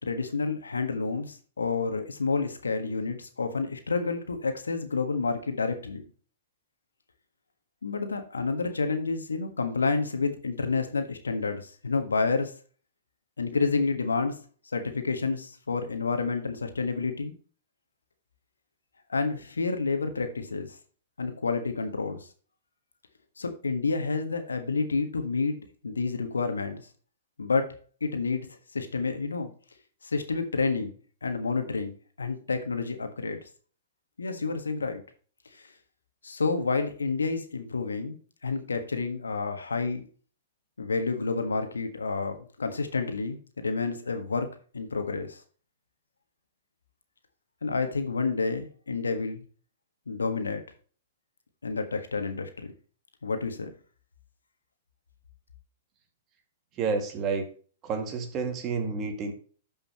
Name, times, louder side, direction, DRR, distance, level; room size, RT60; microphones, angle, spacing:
voice 1, 0.0-6.0 7.8-12.5 13.4-14.4 14.7-17.3 19.1-20.8 21.2-22.3 23.4-26.9 27.4-27.7 28.0-28.5 28.7-29.5 30.0-30.9 31.2-33.4 34.2-35.0 35.5-35.6 36.2-38.2 38.4-40.1 40.8-45.4 47.6-49.4 50.1-50.6 51.6-52.7 53.2-53.7, left 4 dB, 85° left, 7 dB, 1.4 m, -29 dB
voice 2, 56.8-57.5 57.8-59.3, right 5 dB, 35° right, 5 dB, 2.1 m, -29 dB
12.5 x 5.6 x 3.0 m, 0.40 s
hypercardioid pair, 110°, 0 cm